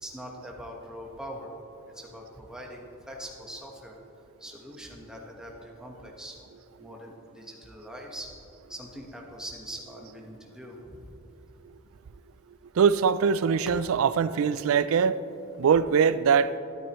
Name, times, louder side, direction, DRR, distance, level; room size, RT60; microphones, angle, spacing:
voice 1, 0.0-1.5 1.9-3.9 4.4-6.4 6.8-8.3 8.7-11.1, equal, 5° right, -1 dB, 1.2 m, -42 dB
voice 2, 12.8-16.6, right 6 dB, 80° right, 16 dB, 0.4 m, -23 dB
13.0 x 12.0 x 3.1 m, 2.9 s
head